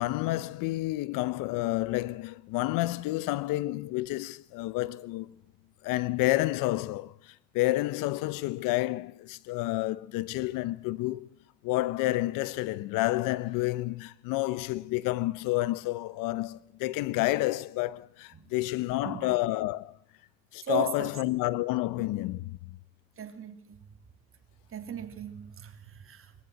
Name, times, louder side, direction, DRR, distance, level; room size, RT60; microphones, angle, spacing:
voice 1, 0.0-5.4 5.8-11.3 11.6-19.9 20.5-22.8, left 18 dB, 85° left, 0.9 m, -30 dB
voice 2, 18.3-19.4 20.6-21.1 23.2-23.8 24.7-26.4, right 9 dB, 40° right, 2.8 m, -38 dB
21.0 x 14.5 x 9.0 m
cardioid pair, 100°, 32 cm